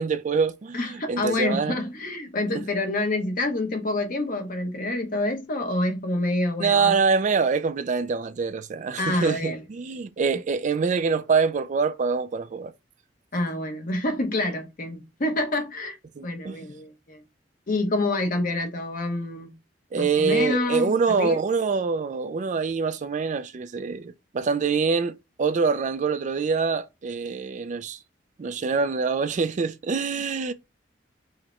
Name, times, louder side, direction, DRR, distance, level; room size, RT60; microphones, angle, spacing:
voice 1, 0.0-1.8 6.6-12.7 16.2-16.6 19.9-28.0 28.4-30.5, right 5 dB, 40° right, 0.4 m, -25 dB
voice 2, 0.7-6.9 9.0-9.6 13.3-16.0 16.2-17.2 17.7-19.5 19.9-21.4, left 2 dB, 50° left, 0.8 m, -27 dB
4.7 x 2.2 x 4.2 m
head